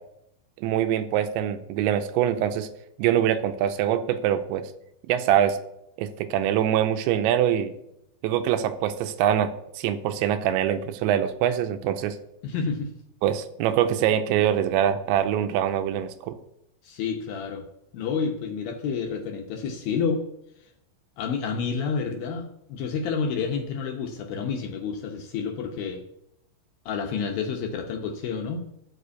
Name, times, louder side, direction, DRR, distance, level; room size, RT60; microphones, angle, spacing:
voice 1, 0.6-2.7 3.0-4.7 5.1-5.6 6.0-7.7 8.2-12.2 13.2-16.4, right 10 dB, 85° right, 9 dB, 2.9 m, -24 dB
voice 2, 12.4-12.9 16.8-17.7 17.9-20.2 21.2-26.0 26.9-28.7, left 5 dB, 75° left, 2 dB, 2.2 m, -29 dB
13.0 x 5.1 x 8.2 m, 0.81 s
omnidirectional pair, 5.3 m